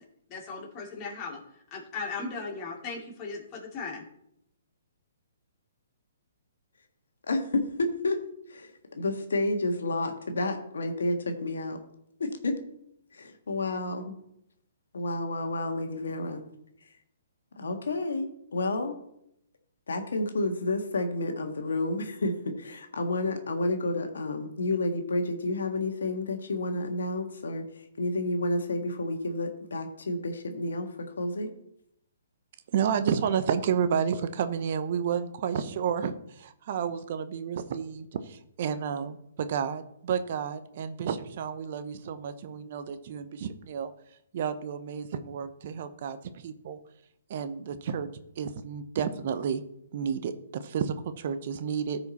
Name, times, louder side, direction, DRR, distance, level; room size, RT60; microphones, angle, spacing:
voice 1, 0.3-1.4 1.7-4.0, left 4 dB, 30° left, -1 dB, 2.6 m, -37 dB
voice 2, 7.3-8.2 8.5-11.8 12.2-12.5 13.1-14.1 14.9-16.4 17.6-18.9 19.9-22.3 22.6-27.6 28.0-30.9 31.2-31.5, left 2 dB, 80° left, 5 dB, 1.5 m, -30 dB
voice 3, 32.7-43.9 44.3-46.2 46.4-46.8 47.3-48.1 48.4-49.6 49.9-52.1, right 7 dB, 50° right, 11 dB, 0.8 m, -31 dB
14.0 x 4.9 x 4.2 m, 0.76 s
hypercardioid pair, 140°, 0 cm